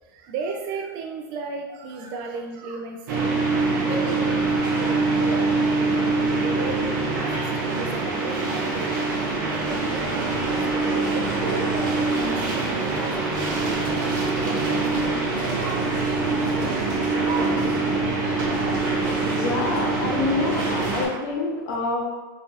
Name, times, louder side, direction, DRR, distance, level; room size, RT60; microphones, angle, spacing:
voice 1, 0.1-6.1 6.5-8.9 9.5-13.3 13.7-16.0 17.9-18.0 21.1-21.3, right 4 dB, 45° right, 2 dB, 0.4 m, -35 dB
sound 1, 3.1-21.1, right 3 dB, 75° right, 0.8 m, -24 dB
voice 2, 19.3-22.0, left 3 dB, 45° left, -1 dB, 0.6 m, -27 dB
3.0 x 2.4 x 2.7 m, 1.3 s
supercardioid pair, 150°, 10 cm